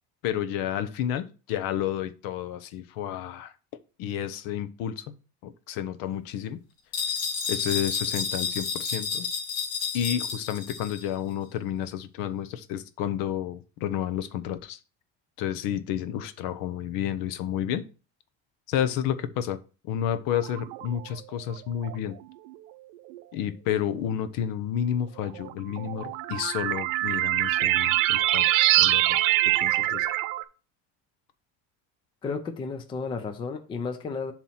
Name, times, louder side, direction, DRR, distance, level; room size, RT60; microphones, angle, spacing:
voice 1, 0.2-3.5 4.0-5.1 5.4-6.6 7.5-9.3 9.9-14.8 15.4-17.8 18.7-19.6 19.9-22.2 23.3-30.1, left 10 dB, 65° left, 0.8 m, -31 dB
sound 1, 6.9-11.1, left 5 dB, 40° left, 1.9 m, -31 dB
sound 2, 20.3-21.0 21.8-21.9 23.1-23.2 25.3-30.4, right 15 dB, 90° right, 0.6 m, -24 dB
voice 2, 32.2-34.3, left 4 dB, 15° left, 0.4 m, -33 dB
7.2 x 3.1 x 5.5 m
cardioid pair, 165°, 37 cm